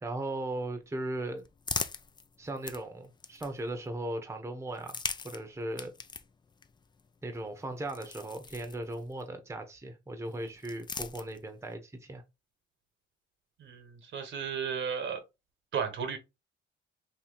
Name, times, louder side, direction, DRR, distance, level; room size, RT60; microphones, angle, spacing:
voice 1, 0.0-1.4 2.4-5.9 7.2-12.2, right 1 dB, 15° right, 0.9 m, -37 dB
sound 1, 0.8-3.9 4.7-9.3 10.2-11.7, left 5 dB, 20° left, 0.4 m, -42 dB
voice 2, 13.6-15.2 15.7-16.2, right 7 dB, 70° right, 1.2 m, -34 dB
2.9 x 2.7 x 3.9 m
cardioid pair, 90°, 20 cm